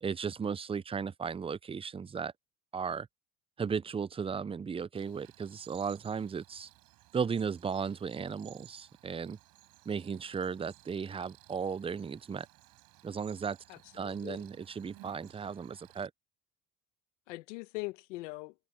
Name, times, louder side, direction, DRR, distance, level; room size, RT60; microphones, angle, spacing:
voice 1, 0.0-2.3 2.7-3.1 3.6-6.7 7.1-9.4 9.9-12.5 13.0-13.6 13.9-16.1, right 6 dB, 15° right, 0.5 m, -35 dB
Cricket, 4.9-16.1, right 19 dB, 70° right, 4.9 m, -59 dB
voice 2, 13.7-14.4 17.3-18.5, left 24 dB, 90° left, 1.2 m, -41 dB
supercardioid pair, 85°, 36 cm